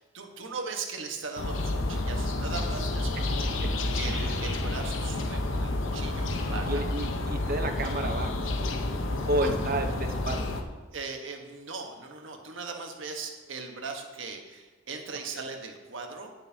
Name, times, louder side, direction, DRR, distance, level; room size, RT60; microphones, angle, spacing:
voice 1, 0.0-3.5 4.0-6.8 9.2-9.5 10.9-16.3, right 4 dB, 75° right, 3 dB, 1.3 m, -39 dB
sound 1, 1.4-10.6, left 2 dB, 90° left, 0.9 m, -30 dB
Acoustic guitar / Strum, 6.3-9.9, left 3 dB, 50° left, 0.9 m, -49 dB
voice 2, 6.7-8.9 9.3-10.6, right 1 dB, 50° right, 5 dB, 0.9 m, -32 dB
18.5 x 6.6 x 2.8 m, 1.3 s
head